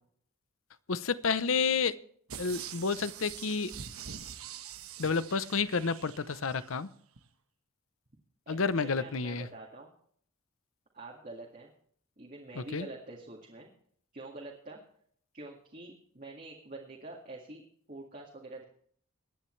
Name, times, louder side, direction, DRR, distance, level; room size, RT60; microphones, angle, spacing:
voice 1, 0.9-1.9 2.4-3.7 5.0-6.9 8.5-9.5 12.5-12.9, left 5 dB, 65° left, 15 dB, 0.7 m, -30 dB
sound 1, 2.3-6.7 7.2-7.3, right 8 dB, 75° right, 1.1 m, -44 dB
voice 2, 8.5-9.9 10.9-11.7 12.2-13.7 14.1-14.8 15.3-17.6 17.9-18.6, right 2 dB, 35° right, -2 dB, 2.1 m, -46 dB
23.5 x 10.0 x 3.2 m, 0.62 s
head